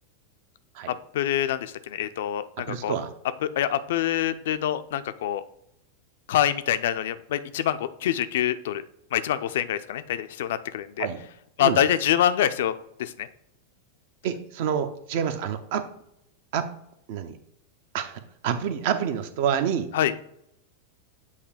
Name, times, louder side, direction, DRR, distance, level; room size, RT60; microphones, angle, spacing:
voice 1, 0.9-3.0 3.4-5.4 6.3-8.8 9.1-11.1 11.6-12.7 13.0-13.3 19.9-20.1, left 11 dB, 55° left, 12 dB, 0.4 m, -25 dB
voice 2, 2.6-3.1 11.0-11.2 11.6-11.8 14.2-15.9 16.5-16.7 17.1-17.4 17.9-19.9, right 8 dB, 50° right, 10 dB, 0.6 m, -28 dB
8.1 x 2.8 x 4.8 m, 0.76 s
figure-of-eight pair, 90°, 0 cm